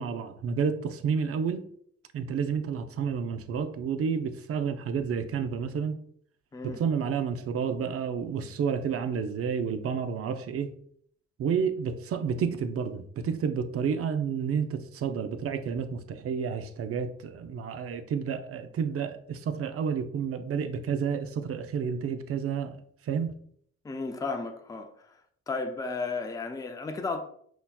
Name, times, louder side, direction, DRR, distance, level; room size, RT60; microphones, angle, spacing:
voice 1, 0.0-1.6 2.1-6.0 6.6-10.7 11.4-22.8 23.1-23.4, right 6 dB, 50° right, 0.5 m, -30 dB
voice 2, 23.8-24.9 25.5-27.3, left 3 dB, 10° left, 0.4 m, -33 dB
5.6 x 2.1 x 2.2 m
cardioid pair, 90°, 30 cm